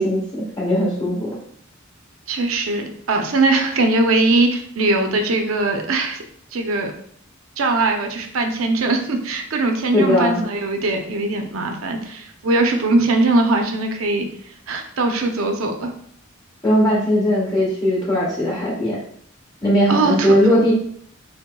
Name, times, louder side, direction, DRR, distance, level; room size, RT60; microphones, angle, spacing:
voice 1, 0.0-1.3 9.9-10.4 16.6-19.0 19.6-20.7, equal, 20° left, -6 dB, 1.4 m, -18 dB
voice 2, 2.3-6.2 6.5-6.9 7.6-14.3 14.7-15.9 19.9-20.3, right 2 dB, 80° right, 4 dB, 0.6 m, -20 dB
5.8 x 2.1 x 2.2 m, 0.64 s
head